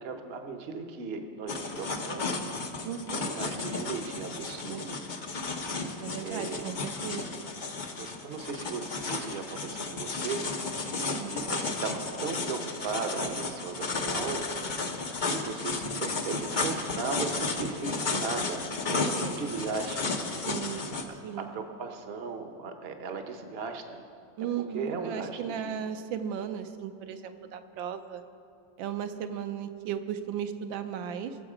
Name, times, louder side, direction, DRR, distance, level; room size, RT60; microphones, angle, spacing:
voice 1, 0.0-2.4 3.1-5.0 6.2-6.7 8.0-10.4 11.3-14.4 15.2-20.1 20.9-21.0 21.4-24.0 24.7-25.8, right 5 dB, 45° right, 6 dB, 0.8 m, -37 dB
sound 1, 1.5-21.0, left 3 dB, 55° left, 0.5 m, -33 dB
voice 2, 2.8-3.3 6.0-7.4 11.0-11.3 20.3-20.9 21.2-21.5 24.4-28.2 28.8-31.4, right 8 dB, 80° right, 8 dB, 1.4 m, -36 dB
21.5 x 7.3 x 5.0 m, 2.5 s
omnidirectional pair, 2.1 m